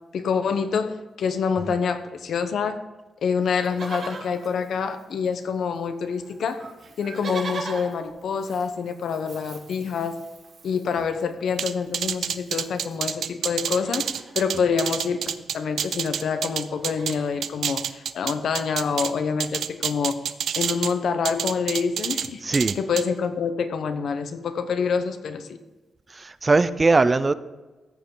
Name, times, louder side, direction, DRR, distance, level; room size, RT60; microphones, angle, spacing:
voice 1, 0.1-2.8 3.2-6.6 7.0-10.2 10.6-14.1 14.3-20.2 20.6-22.4 22.7-25.5, left 6 dB, 75° left, 9 dB, 0.9 m, -26 dB
Livestock farm animals working animals, 3.5-5.5 5.7-5.8 6.1-13.0 13.4-14.4 15.6-15.7 15.9-16.1 16.5-17.4 18.1-18.2, right 4 dB, 65° right, 2.5 m, -41 dB
sound 1, 11.6-17.1 17.4-19.1 19.4-20.9 21.2-22.3 22.5-23.0, right 8 dB, 85° right, 0.5 m, -28 dB
voice 2, 22.4-22.8 26.2-27.3, right 3 dB, 30° right, 14 dB, 0.5 m, -20 dB
14.5 x 8.2 x 3.9 m, 1.2 s
cardioid pair, 80°, 0 cm